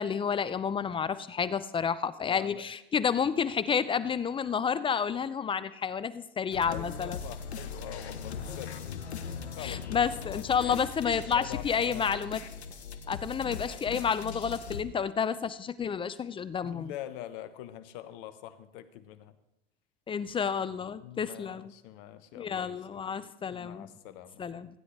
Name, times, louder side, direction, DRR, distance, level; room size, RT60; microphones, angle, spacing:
voice 1, 0.0-7.2 9.6-12.4 13.1-16.9 20.1-21.7 22.3-23.9 24.4-24.7, left 7 dB, 15° left, 15 dB, 0.4 m, -30 dB
voice 2, 2.2-2.6 6.7-8.9 9.6-12.3 16.6-19.3 21.0-23.1 23.5-24.4, left 12 dB, 60° left, 12 dB, 1.1 m, -44 dB
sound 1, 6.5-14.8, left 6 dB, 90° left, 0.9 m, -40 dB
16.0 x 9.7 x 3.2 m, 0.90 s
hypercardioid pair, 90°, 32 cm